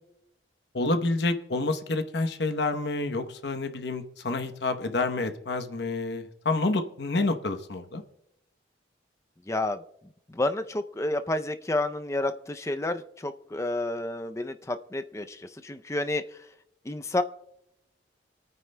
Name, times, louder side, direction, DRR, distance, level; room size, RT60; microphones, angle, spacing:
voice 1, 0.7-8.0, left 2 dB, 65° left, 8 dB, 0.9 m, -28 dB
voice 2, 9.5-9.8 10.3-16.5 16.8-17.2, left 2 dB, 15° left, 9 dB, 0.4 m, -30 dB
27.5 x 9.3 x 2.2 m, 0.83 s
head